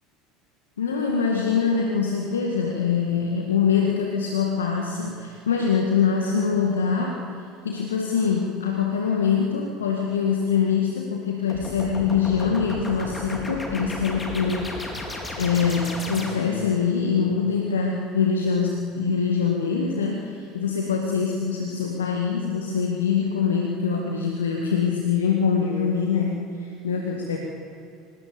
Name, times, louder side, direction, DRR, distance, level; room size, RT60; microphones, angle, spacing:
voice 1, 0.8-7.2 7.6-14.8 15.4-27.4, left 6 dB, 80° left, 1 dB, 2.0 m, -24 dB
sound 1, 11.5-16.7, left 2 dB, 20° left, 4.8 m, -34 dB
24.0 x 20.5 x 7.1 m, 2.7 s
figure-of-eight pair, 70°, 0 cm